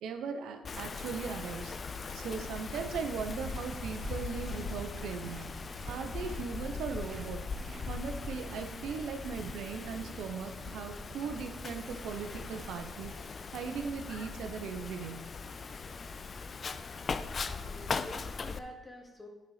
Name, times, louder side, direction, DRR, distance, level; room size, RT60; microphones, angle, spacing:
voice 1, 0.0-1.7 2.1-5.6 5.9-7.4 7.9-13.1 13.5-15.2, right 6 dB, 80° right, 6 dB, 0.8 m, -38 dB
Wind, 0.6-18.6, left 4 dB, 40° left, 0.4 m, -40 dB
sound 1, 2.5-12.7, right 5 dB, 45° right, 0.6 m, -49 dB
voice 2, 17.4-19.3, left 1 dB, 20° left, 2 dB, 1.4 m, -48 dB
9.4 x 4.1 x 4.9 m, 1.1 s
cardioid pair, 90°, 0 cm